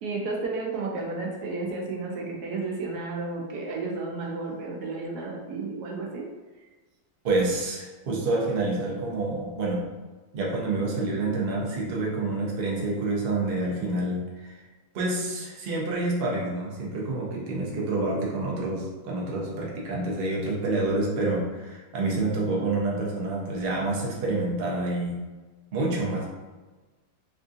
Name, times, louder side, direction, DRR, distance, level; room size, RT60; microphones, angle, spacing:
voice 1, 0.0-6.3, right 3 dB, 70° right, 0 dB, 0.9 m, -32 dB
voice 2, 7.2-9.9 10.3-14.6 14.9-25.2 25.7-26.3, right 2 dB, 85° right, -3 dB, 0.5 m, -28 dB
3.5 x 2.6 x 2.4 m, 1.3 s
omnidirectional pair, 2.0 m